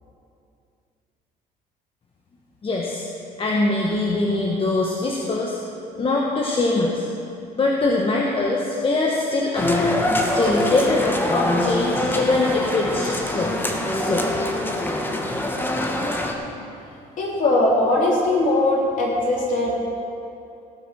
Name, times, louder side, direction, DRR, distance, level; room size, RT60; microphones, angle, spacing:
voice 1, 2.6-3.1 3.4-5.6 6.0-7.0 7.5-9.9 10.2-14.3, left 2 dB, 30° left, -1 dB, 1.2 m, -23 dB
sound 1, 9.5-16.3, left 1 dB, 10° left, 1.2 m, -24 dB
voice 2, 17.2-19.8, left 2 dB, 50° left, -3 dB, 3.4 m, -20 dB
17.0 x 6.1 x 6.1 m, 2.6 s
cardioid pair, 110°, 17 cm